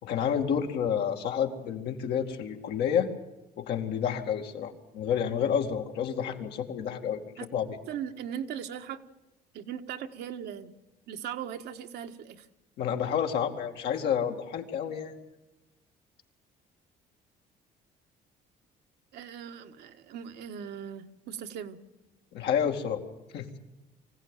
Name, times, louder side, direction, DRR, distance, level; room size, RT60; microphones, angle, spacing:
voice 1, 0.0-3.1 3.6-7.7 12.8-15.1 22.3-23.0 23.3-23.5, left 8 dB, 80° left, 3 dB, 2.5 m, -29 dB
voice 2, 7.9-9.0 9.5-10.7 11.1-12.5 19.1-21.8, right 9 dB, 75° right, 6 dB, 1.5 m, -39 dB
24.5 x 16.0 x 9.1 m, 1.0 s
cardioid pair, 110°, 17 cm